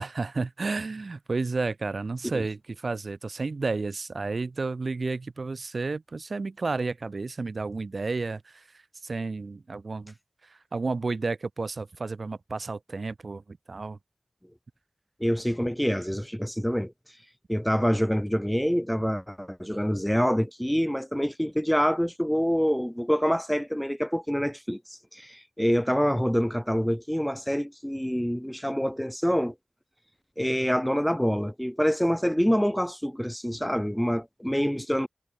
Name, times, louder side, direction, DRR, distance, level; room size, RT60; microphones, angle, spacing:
voice 1, 0.0-8.6 9.0-10.1 10.4-14.0, right 3 dB, 75° right, 4.0 m, -31 dB
voice 2, 15.2-16.9 17.5-24.8 25.1-29.5 30.4-35.1, equal, 5° left, 3.6 m, -26 dB
wide cardioid pair, 55°, 0 cm